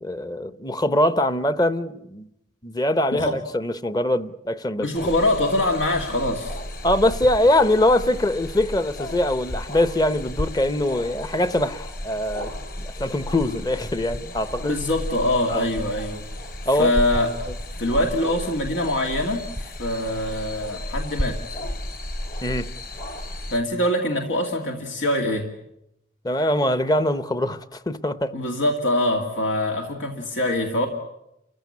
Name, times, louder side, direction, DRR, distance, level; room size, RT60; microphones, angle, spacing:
voice 1, 0.0-2.3 2.6-5.1 6.8-12.5 12.8-14.7 15.5-15.7 16.6-16.9 22.4-22.7 26.2-28.4, left 1 dB, 20° left, 0.8 m, -23 dB
voice 2, 4.8-6.6 14.6-16.2 16.8-17.3 17.8-21.4 23.5-25.5 28.3-30.9, left 1 dB, 85° left, 2.4 m, -24 dB
sound 1, 4.9-23.6, left 1 dB, 50° left, 2.9 m, -33 dB
29.5 x 15.5 x 9.7 m
head